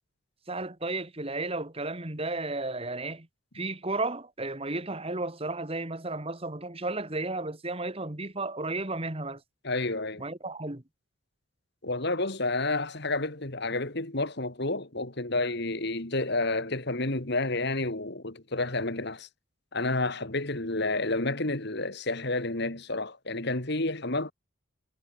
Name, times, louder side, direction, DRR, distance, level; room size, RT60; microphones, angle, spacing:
voice 1, 0.5-3.3 3.5-9.4 10.2-10.8, right 2 dB, 25° right, 1.7 m, -33 dB
voice 2, 9.6-10.2 11.8-19.3 19.7-24.3, left 2 dB, 50° left, 2.4 m, -30 dB
head